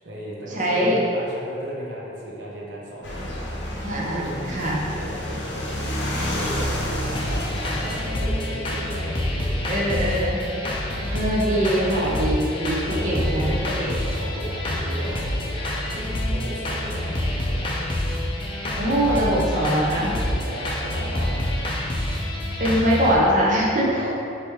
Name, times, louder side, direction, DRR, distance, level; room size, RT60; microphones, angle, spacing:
voice 1, 0.0-10.1 10.8-11.8 12.8-13.5 13.9-17.8 20.3-21.5 23.8-24.1, right 1 dB, 75° right, -5 dB, 0.9 m, -36 dB
voice 2, 0.5-1.0 3.8-4.8 9.7-10.4 11.1-14.0 18.8-20.1 22.6-24.1, equal, 40° right, -4 dB, 0.6 m, -22 dB
sound 1, 3.0-8.0, equal, 65° left, 0.7 m, -29 dB
sound 2, 7.2-23.1, left 1 dB, 25° left, 0.4 m, -27 dB
5.0 x 3.2 x 3.1 m, 2.7 s
head